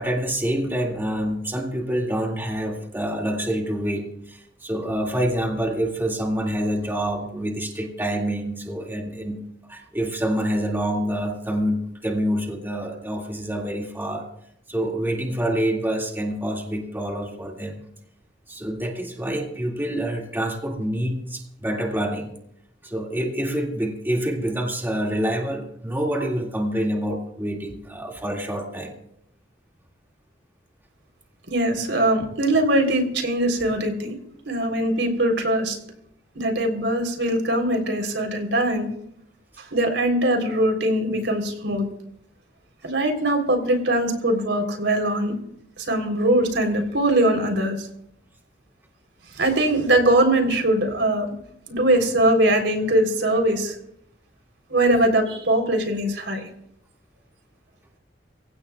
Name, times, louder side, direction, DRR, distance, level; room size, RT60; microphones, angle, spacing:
voice 1, 0.0-9.4 9.7-14.3 14.7-17.8 18.5-22.3 22.8-29.0, right 1 dB, 10° right, 0 dB, 2.2 m, -27 dB
voice 2, 31.5-34.1 34.5-35.8 36.4-38.9 39.6-41.9 42.8-45.3 45.8-47.9 49.3-51.3 51.7-53.8 54.7-56.5, right 1 dB, 85° right, 5 dB, 3.6 m, -21 dB
24.5 x 16.0 x 2.4 m, 0.73 s
head